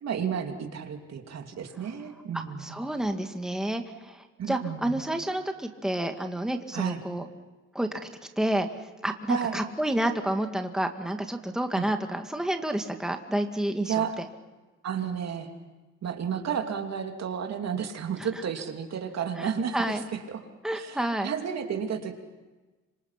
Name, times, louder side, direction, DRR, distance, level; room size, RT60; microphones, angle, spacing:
voice 1, 0.0-2.8 4.4-5.0 6.7-7.0 9.3-9.6 11.7-11.9 13.8-14.2 14.8-15.5 16.0-20.4 20.7-22.1, right 7 dB, 60° right, 4 dB, 2.8 m, -32 dB
voice 2, 2.3-7.3 7.8-8.0 8.4-8.7 9.0-14.3 19.4-20.0 20.6-21.3, right 1 dB, ahead, 5 dB, 1.9 m, -29 dB
26.0 x 25.0 x 5.8 m, 1.2 s
cardioid pair, 90°, 30 cm